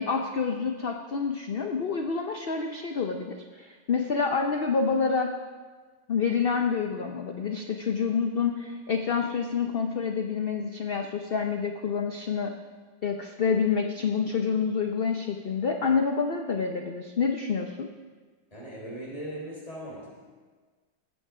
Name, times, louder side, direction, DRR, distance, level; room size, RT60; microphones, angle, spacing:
voice 1, 0.0-5.3 6.1-12.5 13.0-17.9, left 5 dB, 55° left, 4 dB, 0.6 m, -28 dB
voice 2, 18.5-20.2, right 1 dB, 20° left, -4 dB, 4.0 m, -39 dB
19.5 x 8.1 x 4.9 m, 1.4 s
omnidirectional pair, 1.9 m